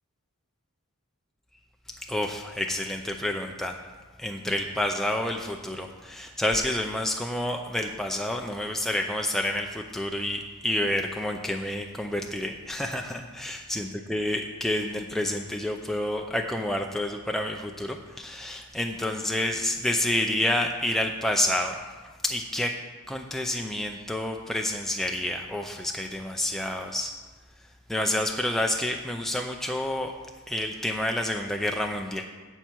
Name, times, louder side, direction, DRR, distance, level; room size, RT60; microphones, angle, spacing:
voice 1, 2.1-3.8 4.2-21.9 22.2-22.7 23.1-27.1 27.9-30.1 30.5-32.3, left 1 dB, ahead, 2 dB, 0.5 m, -29 dB
16.5 x 5.7 x 4.6 m, 1.4 s
head